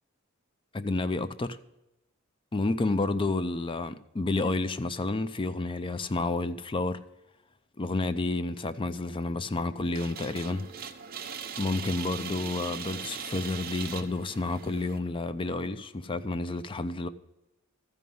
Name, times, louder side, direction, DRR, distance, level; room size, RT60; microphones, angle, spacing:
voice 1, 0.7-1.6 2.5-7.0 7.8-10.7 11.6-17.1, left 2 dB, 25° left, 0.5 m, -30 dB
sound 1, 9.9-15.0, right 7 dB, 45° right, 0.9 m, -40 dB
13.5 x 5.4 x 7.7 m
head